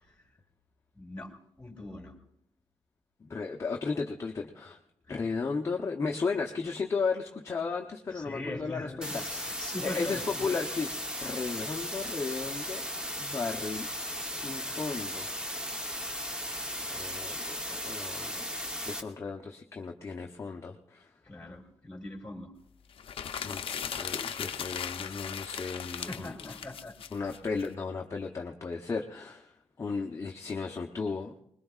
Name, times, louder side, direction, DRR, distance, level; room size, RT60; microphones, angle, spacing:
voice 1, 0.9-2.2 8.1-10.5 21.2-22.5 26.1-27.0, left 2 dB, 10° left, 2 dB, 2.5 m, -41 dB
voice 2, 3.2-4.8 5.1-9.4 9.8-10.9 11.2-12.9 13.2-13.9 14.3-15.3 16.8-18.5 18.9-21.1 23.4-26.6 27.1-29.5 29.8-31.4, left 4 dB, 25° left, 1 dB, 0.8 m, -35 dB
sound 1, 9.0-19.0, equal, 10° right, 1.0 m, -36 dB
sound 2, 23.0-27.7, left 8 dB, 60° left, 0.6 m, -37 dB
24.5 x 20.5 x 2.4 m, 0.75 s
wide cardioid pair, 155°, 11 cm